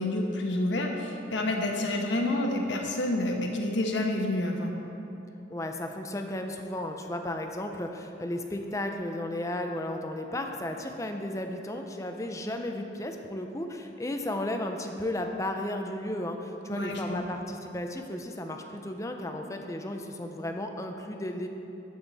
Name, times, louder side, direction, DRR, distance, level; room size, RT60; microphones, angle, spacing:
voice 1, 0.0-4.7 16.7-17.2, left 1 dB, 75° left, 1 dB, 1.1 m, -28 dB
voice 2, 5.5-21.5, left 1 dB, 15° left, 4 dB, 0.5 m, -34 dB
10.5 x 7.9 x 4.1 m, 2.9 s
head